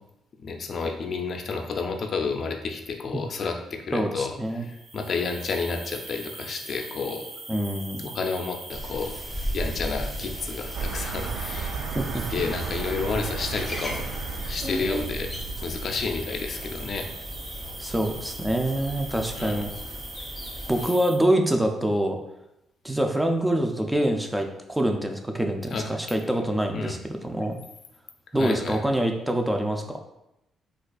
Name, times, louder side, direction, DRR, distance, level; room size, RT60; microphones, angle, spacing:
voice 1, 0.4-7.3 8.0-9.1 9.5-11.8 12.3-15.3 15.6-17.1 19.3-19.6 25.7-25.9 26.7-27.0 28.4-28.8, left 4 dB, 55° left, 3 dB, 0.4 m, -31 dB
voice 2, 3.9-4.7 7.5-8.1 11.9-12.2 17.8-19.7 20.7-22.2 22.8-27.6 28.3-30.0, right 1 dB, 10° right, 4 dB, 0.4 m, -25 dB
sound 1, 4.6-21.2, right 2 dB, 55° right, 0.8 m, -41 dB
sound 2, 8.7-20.8, equal, 10° left, 1.2 m, -37 dB
sound 3, 10.7-16.6, right 5 dB, 80° right, 0.3 m, -34 dB
4.1 x 2.4 x 2.3 m, 0.87 s
supercardioid pair, 70°, 0 cm